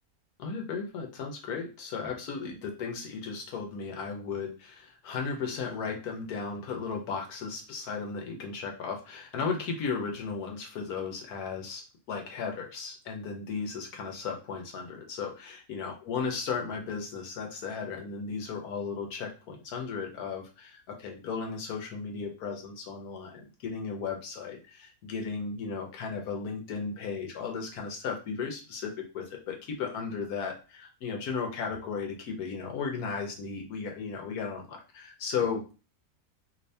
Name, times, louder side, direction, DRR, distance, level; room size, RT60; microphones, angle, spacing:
voice 1, 0.4-35.6, left 5 dB, 85° left, 2 dB, 1.3 m, -35 dB
3.1 x 2.7 x 3.3 m, 0.32 s
omnidirectional pair, 1.6 m